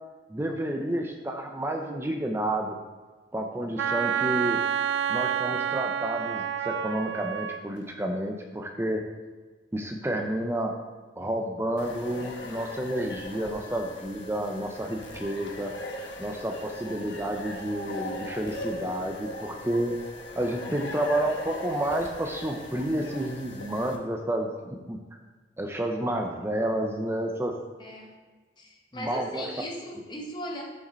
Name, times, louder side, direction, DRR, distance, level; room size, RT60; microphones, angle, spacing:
voice 1, 0.3-2.8 3.3-4.6 5.1-9.0 9.7-10.7 11.2-15.7 16.2-20.0 20.3-25.0 25.6-27.5 28.9-29.5, right 1 dB, 15° right, 3 dB, 0.5 m, -30 dB
Wind instrument woodwind instrument, 3.8-7.6, right 8 dB, 80° right, 0.3 m, -28 dB
sound 1, 11.8-23.9, left 1 dB, 85° left, 1.0 m, -40 dB
voice 2, 27.8-28.1 28.6-30.6, equal, 25° left, 0 dB, 1.1 m, -38 dB
6.4 x 6.0 x 4.2 m, 1.3 s
head